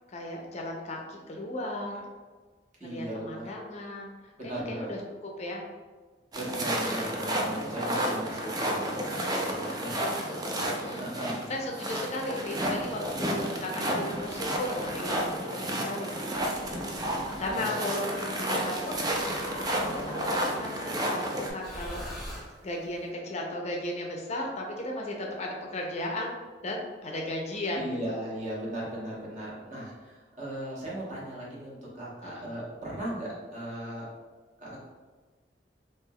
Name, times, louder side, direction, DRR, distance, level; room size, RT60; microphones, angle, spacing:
voice 1, 0.1-2.0 2.8-5.6 10.6-16.5 17.4-19.1 19.7-22.3 22.6-28.2 32.2-32.5, left 1 dB, 40° left, 0 dB, 0.5 m, -36 dB
voice 2, 2.8-3.5 4.4-4.9 6.3-10.0 11.0-11.4 17.5-17.6 27.7-34.1 34.6-34.8, right 1 dB, 45° right, -6 dB, 1.0 m, -37 dB
sound 1, 6.3-21.5, right 1 dB, 20° right, 0.4 m, -31 dB
sound 2, 12.5-13.2 14.1-15.3 16.3-17.6 18.9-20.4 21.5-23.0, equal, ahead, 0.7 m, -44 dB
sound 3, 17.2-23.9, right 1 dB, 75° right, 0.5 m, -51 dB
3.3 x 2.9 x 2.2 m, 1.3 s
head